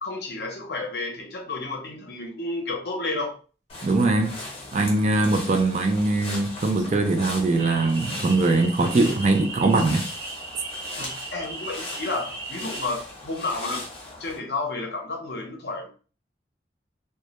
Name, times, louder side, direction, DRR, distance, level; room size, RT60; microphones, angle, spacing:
voice 1, 0.0-3.4 11.0-13.8 14.2-15.9, left 2 dB, 65° left, 0.6 m, -31 dB
sound 1, 3.7-14.4, left 2 dB, 30° left, 0.8 m, -39 dB
voice 2, 3.8-4.4 4.7-10.0, right 2 dB, 40° right, 0.3 m, -21 dB
sound 2, 7.6-12.9, right 2 dB, 80° right, 1.0 m, -37 dB
2.2 x 2.1 x 2.8 m
head